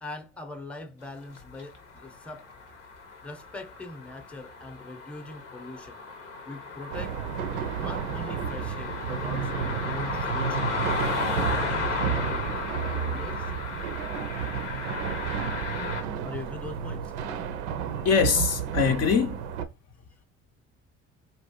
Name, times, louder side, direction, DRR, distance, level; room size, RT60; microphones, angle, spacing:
voice 1, 0.0-2.5 3.2-6.0 6.5-7.2 7.7-10.7 11.4-13.7 16.2-17.1, left 2 dB, 5° left, 0.7 m, -42 dB
sound 1, 1.4-16.0, left 4 dB, 90° left, 0.9 m, -34 dB
sound 2, 6.9-19.6, right 8 dB, 75° right, 0.5 m, -32 dB
voice 2, 18.0-19.4, left 6 dB, 45° left, 0.5 m, -23 dB
4.2 x 2.7 x 2.9 m
hypercardioid pair, 55°, 36 cm